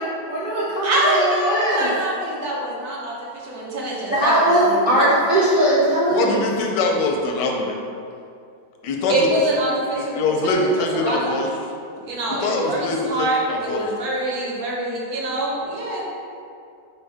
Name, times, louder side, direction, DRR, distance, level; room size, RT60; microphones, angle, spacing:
voice 1, 0.0-1.9 4.1-6.4, right 1 dB, 50° right, -9 dB, 0.5 m, -19 dB
voice 2, 0.8-5.1 9.1-11.4 12.0-16.0, right 1 dB, 65° right, -4 dB, 1.2 m, -25 dB
voice 3, 6.1-7.7 8.8-9.3 9.9-11.5 12.4-13.9, left 2 dB, 85° left, 1 dB, 1.2 m, -23 dB
4.1 x 3.5 x 3.4 m, 2.4 s
omnidirectional pair, 1.8 m